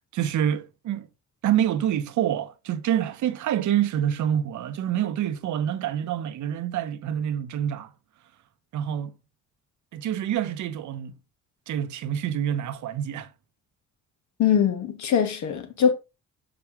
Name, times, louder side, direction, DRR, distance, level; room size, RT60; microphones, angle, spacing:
voice 1, 0.1-1.1 1.4-7.9 8.7-9.1 9.9-11.1 11.7-13.3, right 10 dB, 70° right, 0.8 m, -27 dB
voice 2, 14.4-15.9, left 8 dB, 70° left, 1.3 m, -22 dB
6.0 x 5.1 x 3.0 m
cardioid pair, 90°, 30 cm